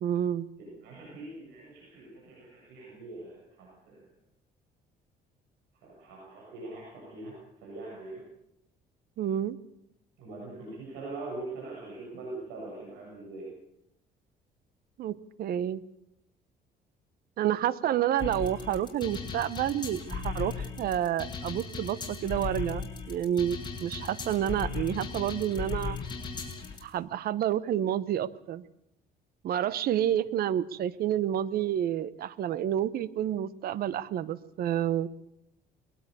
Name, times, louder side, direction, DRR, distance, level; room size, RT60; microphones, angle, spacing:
voice 1, 0.0-0.5 9.2-9.6 15.0-15.8 17.4-26.0 26.8-28.6 29.4-35.1, right 11 dB, 65° right, 18 dB, 1.0 m, -29 dB
voice 2, 0.6-4.0 5.8-8.2 10.2-13.5, right 2 dB, 90° right, -3 dB, 7.9 m, -42 dB
sound 1, 18.2-26.8, left 5 dB, 25° left, 6.6 m, -37 dB
22.0 x 19.0 x 6.9 m, 0.81 s
cardioid pair, 110°, 17 cm